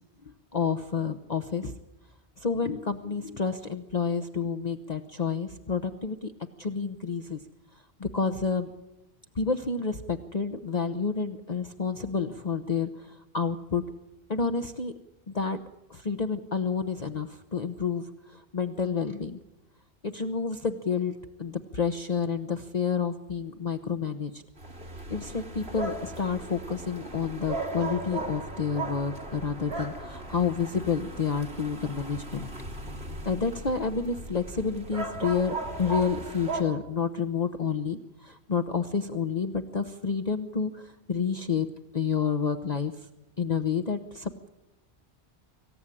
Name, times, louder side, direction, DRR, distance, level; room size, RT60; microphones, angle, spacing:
voice 1, 0.5-1.7 2.4-6.3 6.6-7.4 8.0-8.7 9.4-13.8 14.3-14.9 15.3-15.6 15.9-18.1 18.5-19.4 20.0-21.1 21.4-24.4 25.1-32.5 33.2-41.7 41.9-42.9 43.4-44.5, left 5 dB, 40° left, 8 dB, 1.0 m, -29 dB
sound 1, 24.6-36.6, right 2 dB, 65° right, 3.3 m, -37 dB
25.5 x 15.5 x 9.9 m, 0.97 s
omnidirectional pair, 1.2 m